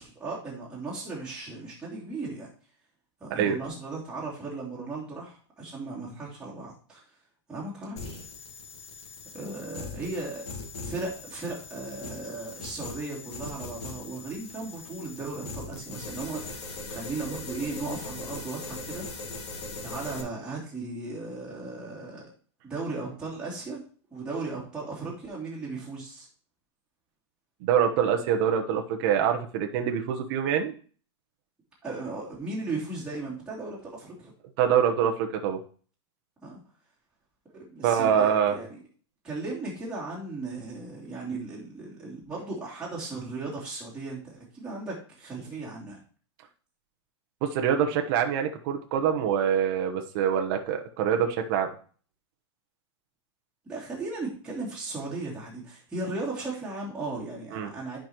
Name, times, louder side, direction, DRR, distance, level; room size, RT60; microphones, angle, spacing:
voice 1, 0.0-2.5 3.2-7.0 7.5-8.3 9.3-10.4 10.8-19.5 19.8-22.2 22.6-23.8 24.1-26.3 31.8-34.3 36.4-36.6 37.5-38.8 39.2-46.0 53.6-58.0, right 3 dB, 5° right, -8 dB, 2.9 m, -36 dB
sound 1, 8.0-20.2, left 3 dB, 70° left, 1.8 m, -40 dB
voice 2, 27.6-30.7 34.6-35.6 37.8-38.6 47.4-51.7 57.5-57.7, right 8 dB, 45° right, 4 dB, 1.0 m, -25 dB
10.0 x 5.2 x 3.0 m, 0.41 s
supercardioid pair, 145°, 15 cm